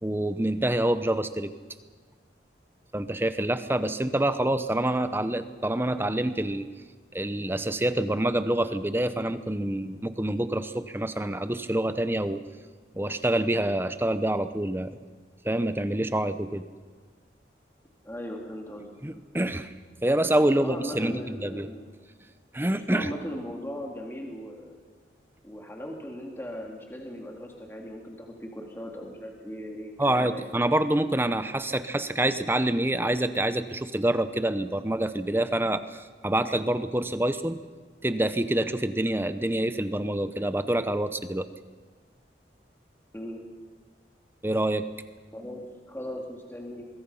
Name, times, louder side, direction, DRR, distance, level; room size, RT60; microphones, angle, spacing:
voice 1, 0.0-1.5 2.9-6.7 7.1-12.4 12.9-14.9 15.4-16.6 19.0-19.7 20.0-21.7 22.5-23.1 30.0-37.6 38.0-41.5 44.4-44.8, right 1 dB, 10° right, 11 dB, 0.8 m, -26 dB
voice 2, 18.0-18.9 20.6-21.9 22.9-24.7 25.4-30.5 43.1-43.4 45.3-46.8, equal, 15° left, 0 dB, 2.5 m, -38 dB
24.5 x 22.5 x 5.6 m, 1.5 s
head